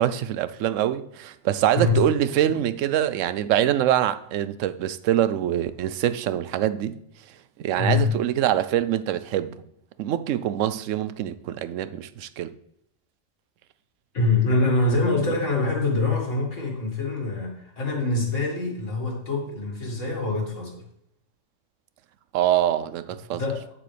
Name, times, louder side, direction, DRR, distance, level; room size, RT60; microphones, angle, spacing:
voice 1, 0.0-7.0 7.6-9.5 10.0-12.5 22.3-23.4, right 11 dB, 80° right, 0.9 m, -24 dB
voice 2, 7.8-8.1 14.1-20.8 23.3-23.7, left 2 dB, 75° left, 2.5 m, -24 dB
8.9 x 7.5 x 3.3 m
omnidirectional pair, 1.3 m